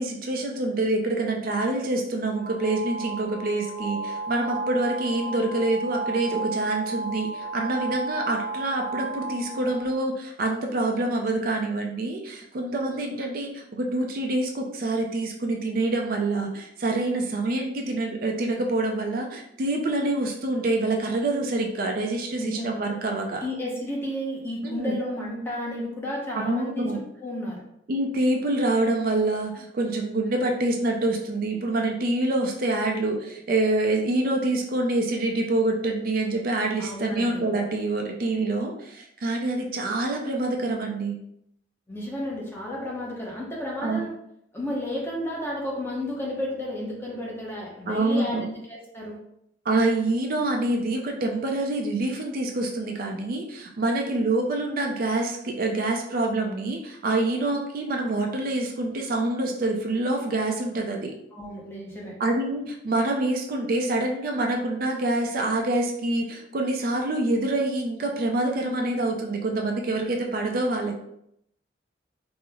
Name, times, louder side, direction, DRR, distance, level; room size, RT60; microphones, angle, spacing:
voice 1, 0.0-23.4 24.6-24.9 26.3-27.0 27.9-41.2 43.8-44.0 47.9-48.5 49.7-61.1 62.2-70.9, right 2 dB, 50° right, 2 dB, 0.4 m, -26 dB
sound 1, 2.4-10.0, right 3 dB, 80° right, 1.0 m, -33 dB
voice 2, 22.4-22.7 23.4-26.9 27.2-27.6 36.8-37.4 41.9-44.1 44.5-49.2 61.3-62.1, left 1 dB, 15° left, -4 dB, 0.8 m, -32 dB
3.0 x 2.0 x 3.5 m, 0.75 s
head